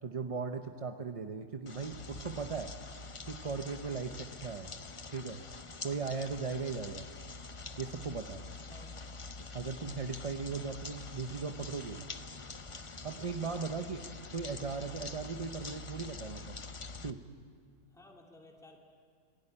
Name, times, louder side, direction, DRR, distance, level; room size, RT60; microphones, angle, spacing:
voice 1, 0.0-2.7 3.3-4.7 5.1-5.4 5.8-7.1 7.8-8.4 9.5-12.1 13.0-14.1 14.3-16.6 17.0-17.2, right 5 dB, 35° right, 6 dB, 0.6 m, -38 dB
sound 1, 1.7-17.1, left 3 dB, 30° left, 0.6 m, -46 dB
voice 2, 8.7-9.0 17.9-18.8, left 2 dB, ahead, 0 dB, 2.4 m, -57 dB
28.0 x 18.5 x 9.9 m, 2.2 s
omnidirectional pair, 1.7 m